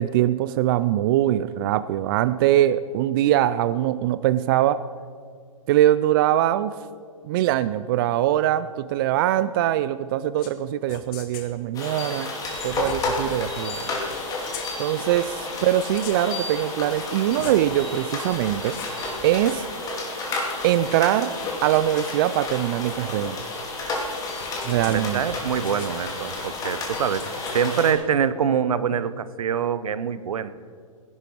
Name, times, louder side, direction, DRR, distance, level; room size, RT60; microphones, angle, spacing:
voice 1, 0.0-4.8 5.7-6.8 7.2-12.3 12.6-13.9 14.8-18.8 19.2-19.7 20.6-21.3 21.6-23.4 24.6-25.2, right 12 dB, 40° right, 14 dB, 0.4 m, -22 dB
sound 1, 10.4-10.6 10.9-11.5 12.5-13.4 14.1-14.3 14.5-14.7 15.7-16.4 16.9-17.7 18.2-19.0 19.3-19.6 21.4-22.9 24.0-25.2 25.6-25.9 27.2-27.6, left 8 dB, 40° left, 1.4 m, -42 dB
sound 2, 11.7-27.9, left 2 dB, 20° left, 2.6 m, -31 dB
voice 2, 24.9-30.5, right 7 dB, 75° right, 14 dB, 0.8 m, -25 dB
18.0 x 11.0 x 4.6 m, 2.1 s
hypercardioid pair, 135°, 18 cm